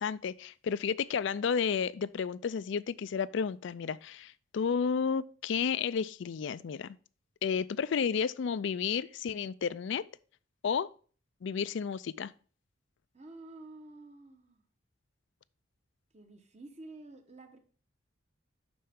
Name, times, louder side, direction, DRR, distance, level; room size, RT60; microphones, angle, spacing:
voice 1, 0.0-7.0 7.4-10.0 10.6-10.9 11.4-12.3, left 6 dB, 60° left, 0.3 m, -32 dB
voice 2, 13.1-14.6 16.1-17.6, right 2 dB, 30° right, 1.0 m, -50 dB
11.5 x 4.3 x 3.5 m
head